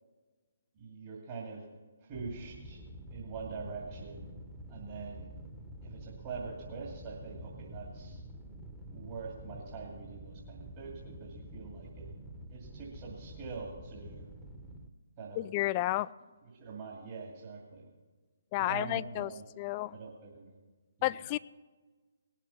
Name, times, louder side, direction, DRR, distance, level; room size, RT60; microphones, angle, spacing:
voice 1, 0.7-1.7 2.0-2.8 3.1-4.3 4.7-5.4 5.8-8.2 8.9-12.1 12.5-14.3 15.2-15.4 16.4-17.9 18.6-19.5 19.9-20.6 21.0-21.2, right 4 dB, 35° right, -4 dB, 2.5 m, -44 dB
sound 1, 2.1-14.9, right 1 dB, ahead, 1.1 m, -48 dB
voice 2, 15.4-16.1 18.5-19.3 19.6-20.0 21.0-21.4, left 17 dB, 30° left, 18 dB, 0.3 m, -31 dB
19.0 x 7.4 x 5.7 m, 1.3 s
figure-of-eight pair, 140°, 0 cm